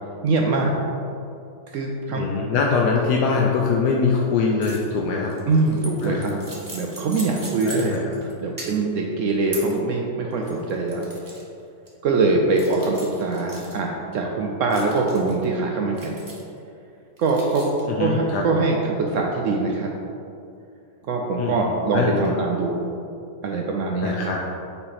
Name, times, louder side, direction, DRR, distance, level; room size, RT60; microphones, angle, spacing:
voice 1, 0.2-0.8 1.7-2.3 5.5-6.4 6.7-8.0 8.4-11.1 12.0-16.2 17.2-17.7 18.0-19.9 21.1-22.8 23.4-24.2, right 3 dB, 80° right, 0 dB, 0.7 m, -23 dB
voice 2, 2.1-5.3 6.0-6.2 7.6-8.1 17.9-18.4 21.3-21.7 21.9-22.2 24.0-24.4, left 5 dB, 75° left, -1 dB, 1.1 m, -23 dB
sound 1, 4.6-4.9 5.2-8.3 8.6-9.0 9.5-9.8 10.3-11.4 11.9-12.0 12.6-13.8 14.7-15.4 16.0-16.6 17.2-17.8, right 2 dB, 30° right, 0.4 m, -39 dB
5.7 x 4.3 x 4.1 m, 2.6 s
omnidirectional pair, 1.9 m